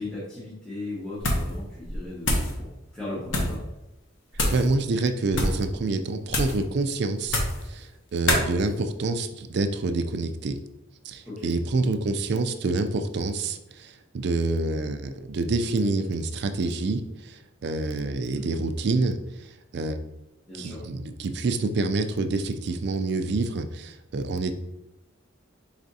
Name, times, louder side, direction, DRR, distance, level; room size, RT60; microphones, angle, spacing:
voice 1, 0.0-3.6 11.2-11.5 18.3-18.6 20.5-20.8, left 2 dB, 5° left, -10 dB, 1.1 m, -37 dB
sound 1, 1.2-1.6 1.8-2.5 3.3-3.6 4.3-4.7 5.3-5.6 6.3-6.6 7.2-7.7 8.3-8.5, left 1 dB, 70° left, 0.9 m, -25 dB
voice 2, 4.5-10.6 11.0-19.5 19.7-20.0 20.5-24.5, right 3 dB, 55° right, 8 dB, 0.4 m, -27 dB
4.9 x 3.3 x 2.7 m, 0.94 s
head